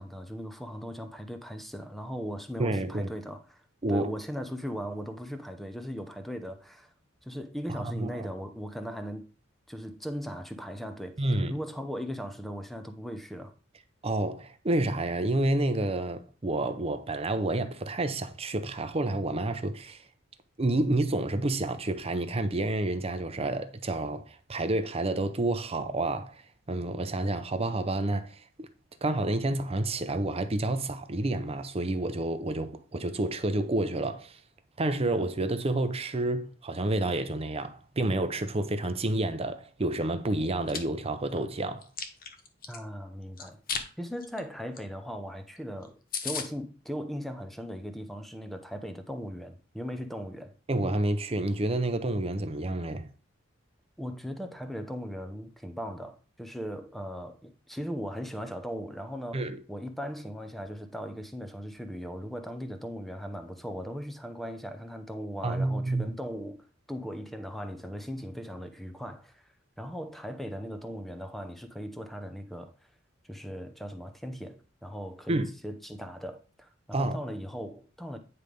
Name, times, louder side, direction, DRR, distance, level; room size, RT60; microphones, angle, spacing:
voice 1, 0.0-3.6 3.9-6.9 7.2-9.3 9.7-11.2 11.5-13.5 42.7-43.6 44.0-50.5 54.0-66.6 66.9-69.4 69.8-72.7 73.2-78.2, equal, ahead, 0.8 m, -38 dB
voice 2, 2.6-3.1 3.8-4.1 7.7-8.3 11.2-11.5 14.0-20.0 20.6-28.7 29.0-34.4 34.8-41.8 50.7-53.1 59.3-59.6 65.4-66.1 75.3-75.5 76.9-77.2, right 2 dB, 30° right, 0.6 m, -29 dB
Chewing mastication, 40.4-40.8 41.3-42.8 43.4-43.9 44.2-44.4 44.7-44.8 45.1-45.2 45.6-45.7 45.8-45.9 46.1-46.5, left 6 dB, 45° left, 1.0 m, -34 dB
9.6 x 3.3 x 5.2 m
head